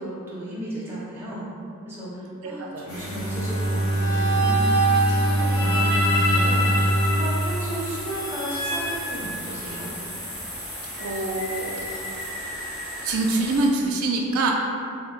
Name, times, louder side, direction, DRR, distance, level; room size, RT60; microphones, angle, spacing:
voice 1, 0.0-1.4 1.8-9.9, right 1 dB, 10° right, -9 dB, 0.6 m, -34 dB
voice 2, 2.4-2.9 11.0-12.1 13.0-14.5, right 2 dB, 70° right, 0 dB, 0.3 m, -25 dB
Bowed string instrument, 2.8-8.8, right 1 dB, 60° left, 0.8 m, -24 dB
sound 1, 2.9-13.7, equal, 80° left, 1.3 m, -36 dB
sound 2, 3.8-9.9, right 1 dB, 45° left, 1.1 m, -26 dB
2.7 x 2.2 x 3.7 m, 2.5 s
head